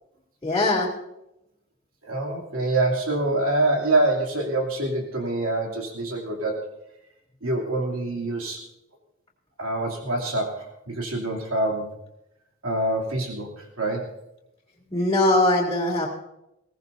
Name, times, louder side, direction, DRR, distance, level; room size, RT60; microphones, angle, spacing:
voice 1, 0.4-0.9 14.9-16.1, left 2 dB, 15° left, -9 dB, 2.7 m, -21 dB
voice 2, 2.0-6.7 7.4-8.6 9.6-11.9 12.6-14.1, right 2 dB, 85° right, 0 dB, 2.7 m, -25 dB
21.0 x 17.0 x 2.7 m, 0.85 s
head